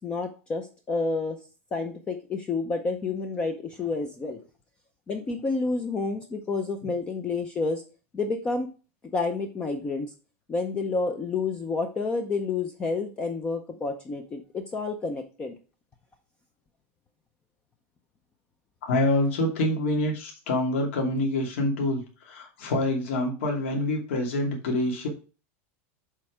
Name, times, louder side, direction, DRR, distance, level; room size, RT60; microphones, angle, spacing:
voice 1, 0.0-1.4 1.7-4.4 5.1-7.8 8.1-8.7 9.1-10.1 10.5-15.5, left 3 dB, 15° left, 6 dB, 0.5 m, -29 dB
voice 2, 18.8-25.1, left 1 dB, 70° left, 1 dB, 2.6 m, -26 dB
7.4 x 4.4 x 4.9 m, 0.34 s
supercardioid pair, 180°, 7 cm